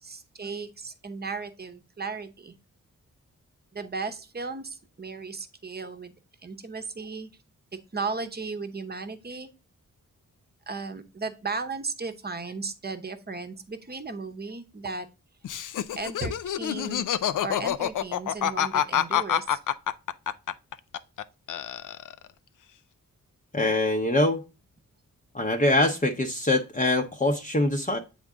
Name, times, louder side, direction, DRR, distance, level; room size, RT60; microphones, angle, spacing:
voice 1, 0.0-2.5 3.7-6.2 6.4-7.3 7.7-9.5 10.7-15.1 16.0-17.0 17.4-19.6, right 4 dB, 30° right, 0.9 m, -35 dB
Laughter, 15.4-21.2 21.5-22.3, left 10 dB, 75° left, 0.5 m, -27 dB
voice 2, 23.5-24.4 25.3-28.0, left 1 dB, 25° left, 0.7 m, -23 dB
7.9 x 3.7 x 3.6 m
cardioid pair, 75°, 31 cm